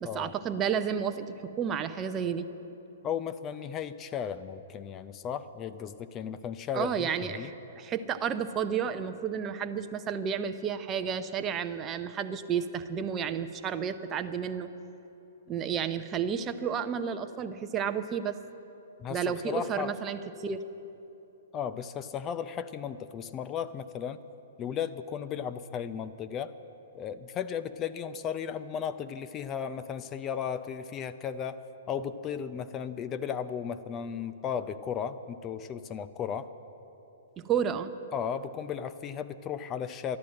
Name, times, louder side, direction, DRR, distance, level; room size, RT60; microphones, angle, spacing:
voice 1, 0.0-2.5 6.7-14.7 15.5-18.4 19.1-20.6 37.4-37.9, right 7 dB, 25° right, 8 dB, 0.7 m, -31 dB
voice 2, 3.0-7.5 19.0-20.0 21.5-24.2 24.6-26.6 26.9-31.6 31.9-36.5 38.1-40.2, left 8 dB, 25° left, 12 dB, 0.5 m, -35 dB
12.0 x 11.5 x 7.6 m, 3.0 s
hypercardioid pair, 120°, 0 cm